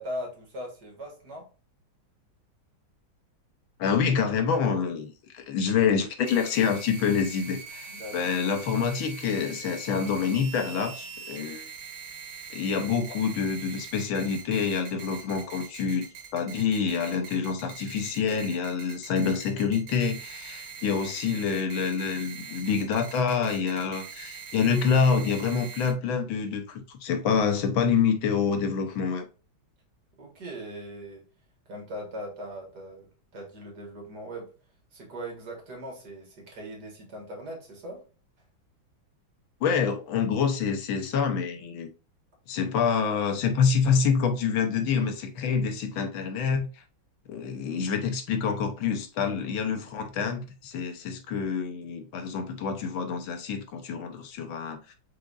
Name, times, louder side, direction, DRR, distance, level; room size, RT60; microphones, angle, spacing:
voice 1, 0.0-1.5 7.9-8.4 30.2-31.3 31.7-33.1 33.3-34.5 34.9-38.0 49.3-49.4, equal, 55° right, 2.0 m, -39 dB
voice 2, 3.8-11.7 12.5-16.1 16.3-29.2 39.6-41.9 42.5-46.8 47.3-54.9, left 6 dB, 85° left, 1.6 m, -27 dB
sound 1, 6.2-25.9, right 6 dB, 80° right, 1.9 m, -43 dB
5.0 x 3.9 x 2.4 m
omnidirectional pair, 2.2 m